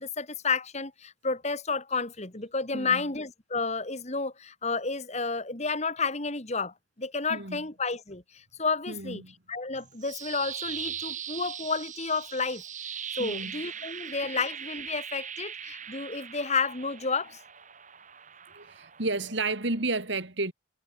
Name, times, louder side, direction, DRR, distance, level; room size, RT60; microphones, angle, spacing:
voice 1, 0.0-9.2 9.5-12.6 13.1-17.4, left 4 dB, 35° left, 2.1 m, -31 dB
voice 2, 7.3-7.6 8.9-9.3 13.2-13.6 18.5-20.5, right 3 dB, 60° right, 2.9 m, -32 dB
sound 1, 9.8-19.8, right 8 dB, 35° right, 3.2 m, -40 dB
head